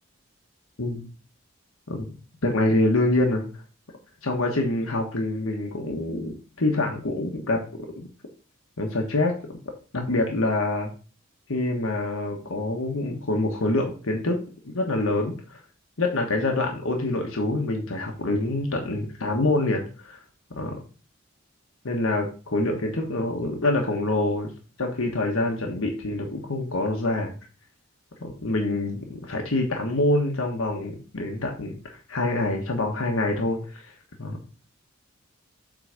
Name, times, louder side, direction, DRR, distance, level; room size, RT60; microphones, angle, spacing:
voice 1, 2.4-3.4 4.2-7.6 8.0-8.1 8.8-9.4 9.9-10.9 11.5-15.6 16.0-20.2 20.5-20.8 21.8-24.5 24.8-27.3 28.2-34.4, left 2 dB, 85° left, 1 dB, 1.3 m, -26 dB
7.7 x 4.0 x 5.1 m, 0.36 s
head